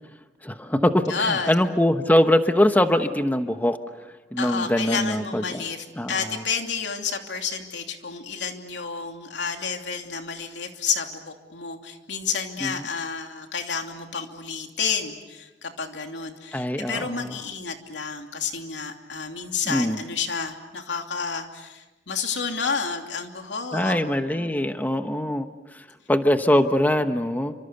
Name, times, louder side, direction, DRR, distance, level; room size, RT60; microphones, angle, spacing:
voice 1, 0.4-3.8 4.3-5.6 6.0-6.4 12.6-12.7 16.5-17.4 19.7-20.0 23.7-25.5 25.7-27.5, left 1 dB, 10° left, 7 dB, 1.1 m, -22 dB
voice 2, 1.1-1.5 4.4-24.0 24.3-24.5, left 5 dB, 90° left, 4 dB, 2.9 m, -30 dB
29.0 x 26.0 x 6.8 m, 1.1 s
head